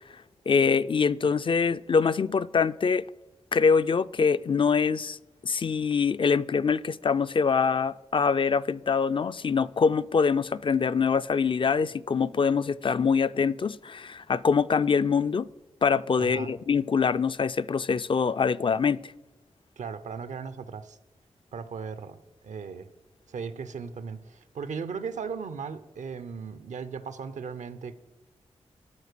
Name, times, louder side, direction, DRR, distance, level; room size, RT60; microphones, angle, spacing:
voice 1, 0.5-3.0 3.5-5.2 5.4-15.5 15.8-19.1, left 5 dB, 45° left, 0.4 m, -24 dB
voice 2, 16.2-16.5 19.8-21.0 21.5-22.2 22.4-22.9 23.3-28.0, right 6 dB, 80° right, 0.7 m, -37 dB
12.5 x 4.5 x 6.7 m
cardioid pair, 45°, 12 cm